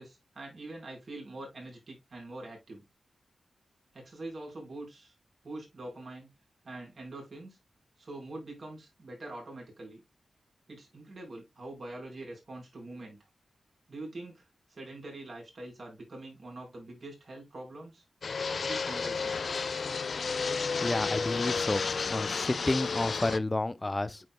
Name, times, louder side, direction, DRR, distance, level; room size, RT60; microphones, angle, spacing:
voice 1, 0.0-2.8 3.9-5.1 5.4-6.3 6.6-7.6 8.0-10.0 10.7-13.2 13.9-18.0 18.5-19.4, right 2 dB, 60° right, 4.6 m, -44 dB
Fixed-wing aircraft airplane, 18.2-23.4, left 5 dB, 65° left, 0.4 m, -32 dB
voice 2, 20.8-21.8 22.1-24.3, left 2 dB, 25° left, 0.7 m, -30 dB
9.5 x 4.9 x 2.3 m
cardioid pair, 50°, 0 cm